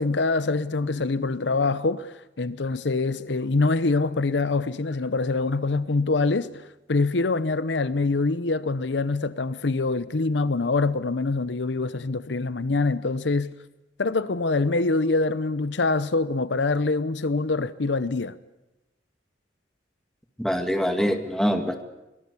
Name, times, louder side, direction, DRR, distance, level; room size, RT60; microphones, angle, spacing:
voice 1, 0.0-13.5 14.0-18.4, left 3 dB, 70° left, 0.8 m, -25 dB
voice 2, 20.4-21.8, equal, 5° left, 2.1 m, -24 dB
24.0 x 19.0 x 8.4 m
head